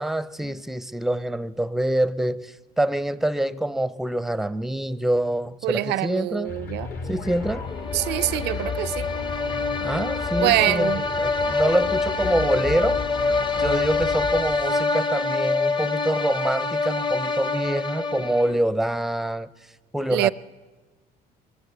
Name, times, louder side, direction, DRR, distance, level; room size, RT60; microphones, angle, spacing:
voice 1, 0.0-6.5 7.1-7.7 9.8-10.9 11.2-13.0 13.6-19.5 19.9-20.3, right 1 dB, ahead, 0.5 m, -25 dB
voice 2, 5.6-6.9 7.9-9.1 10.4-11.0 20.1-20.3, right 16 dB, 80° right, 0.5 m, -24 dB
sound 1, 6.4-14.7, left 5 dB, 65° left, 2.8 m, -34 dB
sound 2, 7.7-18.7, left 3 dB, 30° left, 0.9 m, -26 dB
21.5 x 15.0 x 8.1 m
cardioid pair, 110°, 17 cm